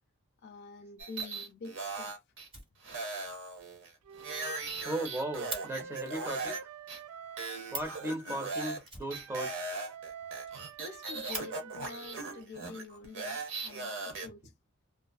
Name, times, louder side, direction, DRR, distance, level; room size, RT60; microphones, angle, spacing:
voice 1, 0.4-2.2 10.8-14.5, left 4 dB, 50° left, 0.3 m, -47 dB
sound 1, 1.0-2.5 2.8-6.6 6.9-7.0 7.4-8.8 9.1-14.3, right 3 dB, 60° right, 0.7 m, -39 dB
Fire, 2.4-3.3 3.6-3.7 4.0-4.1 4.3-4.4 4.7-5.7 7.4-7.5 7.7-8.1 8.8-9.8 10.1-10.2 10.4-10.5 10.9-11.5 12.5-12.6 13.2-13.8, right 2 dB, 25° right, 1.2 m, -43 dB
Wind instrument woodwind instrument, 4.0-8.1 9.1-12.4, right 6 dB, 80° right, 0.3 m, -47 dB
voice 2, 4.8-6.6 7.7-9.8, right 1 dB, 10° right, 0.6 m, -37 dB
2.5 x 2.3 x 2.3 m
head